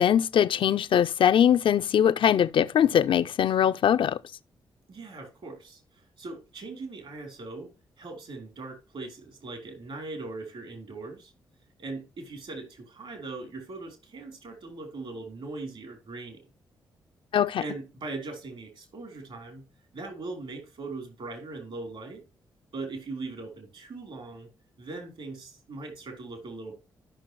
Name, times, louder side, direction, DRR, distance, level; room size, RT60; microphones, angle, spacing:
voice 1, 0.0-4.2 17.3-17.6, left 9 dB, 60° left, 0.4 m, -22 dB
voice 2, 4.9-7.7 8.0-11.3 11.8-16.4 17.6-19.7 19.9-22.2 22.7-24.5 24.8-26.7, right 3 dB, 65° right, 3.7 m, -40 dB
13.0 x 6.0 x 3.0 m
supercardioid pair, 45°, 10 cm